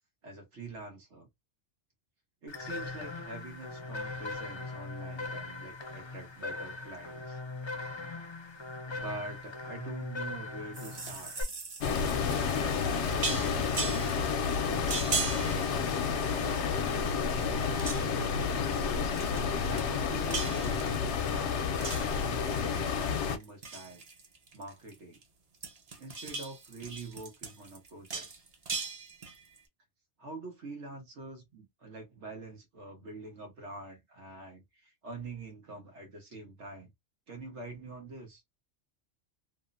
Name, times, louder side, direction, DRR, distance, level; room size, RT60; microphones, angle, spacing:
voice 1, 0.2-1.3 2.4-7.4 8.9-11.3 12.5-14.2 14.6-15.9 16.4-18.3 19.6-24.0 24.5-25.2 26.0-28.3 30.2-36.9 37.3-38.4, right 2 dB, 85° right, 1.4 m, -45 dB
sound 1, 2.5-11.4, left 3 dB, 35° left, 0.5 m, -40 dB
sound 2, 10.7-16.6 16.9-17.5 17.7-18.3 19.2-19.5 19.8-21.3 21.8-22.9 23.2-25.2 25.5-29.6, right 4 dB, 40° right, 0.7 m, -39 dB
sound 3, 11.8-23.4, left 6 dB, 80° left, 0.9 m, -30 dB
3.0 x 2.0 x 2.4 m
omnidirectional pair, 1.2 m